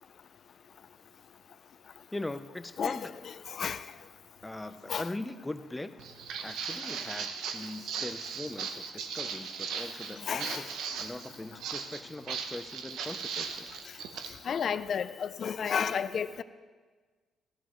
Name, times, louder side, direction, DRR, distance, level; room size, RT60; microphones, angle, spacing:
voice 1, 2.1-3.1 4.4-5.9 6.4-13.8, left 2 dB, 10° left, 0.6 m, -41 dB
Walk footsteps, 6.0-14.3, right 6 dB, 80° right, 0.9 m, -38 dB
voice 2, 10.2-10.6 14.5-16.4, left 7 dB, 55° left, 0.5 m, -31 dB
15.0 x 13.5 x 3.1 m
cardioid pair, 90°, 0 cm